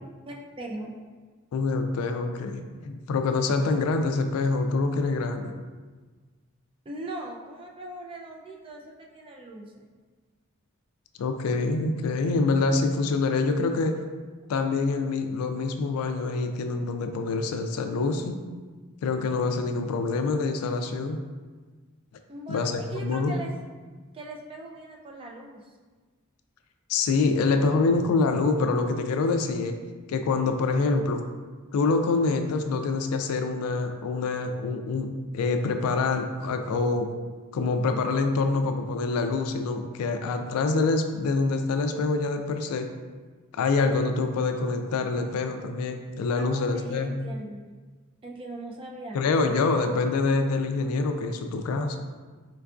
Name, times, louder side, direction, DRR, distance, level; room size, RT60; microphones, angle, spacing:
voice 1, 0.3-0.9 6.9-9.9 22.3-23.5 24.1-25.7 46.3-47.6 48.2-49.3, right 2 dB, 25° right, -1 dB, 0.3 m, -40 dB
voice 2, 1.5-5.5 11.2-14.0 14.5-18.4 19.0-21.2 22.5-23.3 26.9-29.7 30.1-31.2 31.7-37.1 37.5-42.9 43.5-47.2 49.1-52.0, left 3 dB, 75° left, 7 dB, 0.3 m, -26 dB
4.5 x 2.3 x 2.4 m, 1.4 s
head